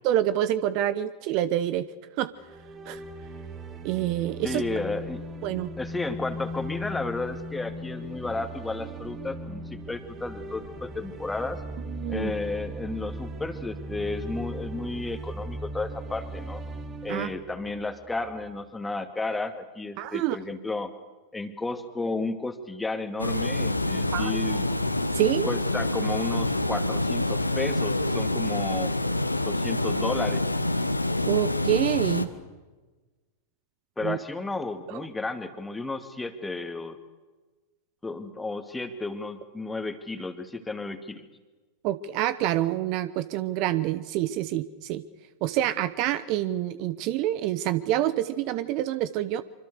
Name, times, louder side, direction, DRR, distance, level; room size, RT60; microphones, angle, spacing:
voice 1, 0.0-1.9 2.2-2.3 2.9-3.0 3.8-4.6 5.4-5.7 11.9-12.3 17.1-17.3 20.0-20.4 24.1-24.6 25.1-25.5 31.2-32.3 34.0-34.2 34.9-35.0 41.8-45.0 45.4-49.4, right 13 dB, 45° right, 16 dB, 0.9 m, -27 dB
sound 1, 2.4-18.5, right 1 dB, 25° right, 2.8 m, -38 dB
voice 2, 4.4-5.2 5.8-11.6 12.1-16.6 17.0-20.9 21.3-24.7 25.4-29.0 29.4-30.4 34.0-37.0 38.0-41.2, left 3 dB, 10° left, 8 dB, 2.2 m, -33 dB
Water, 23.2-32.3, left 2 dB, 85° left, 1.4 m, -27 dB
25.5 x 25.5 x 6.7 m, 1.2 s
figure-of-eight pair, 90°, 0 cm